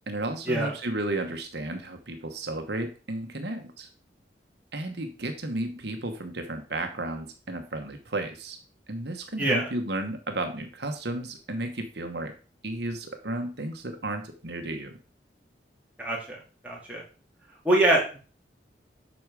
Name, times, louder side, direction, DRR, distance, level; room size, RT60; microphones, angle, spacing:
voice 1, 0.1-3.9 4.7-8.6 8.9-12.3 12.6-14.9, right 2 dB, 70° right, 5 dB, 1.2 m, -33 dB
voice 2, 9.4-9.7 16.0-16.4 16.6-17.0 17.6-18.2, right 1 dB, 10° right, -4 dB, 2.7 m, -24 dB
8.7 x 6.2 x 4.8 m, 0.37 s
head